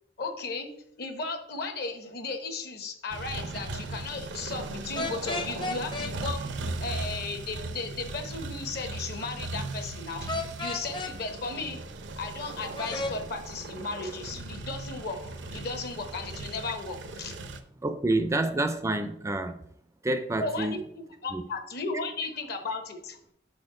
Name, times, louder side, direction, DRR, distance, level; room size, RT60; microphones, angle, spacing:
voice 1, 0.2-0.7 1.0-6.4 6.8-11.8 12.2-17.4 20.4-23.2, left 3 dB, 60° left, 1.0 m, -35 dB
sound 1, 3.1-17.6, right 2 dB, 85° right, 0.7 m, -38 dB
sound 2, 5.0-6.1 10.3-11.1 12.8-13.2, left 3 dB, 25° left, 0.6 m, -32 dB
voice 2, 17.8-19.6 20.0-20.8 21.3-21.4, right 2 dB, 15° right, 0.4 m, -28 dB
6.4 x 4.2 x 4.8 m
head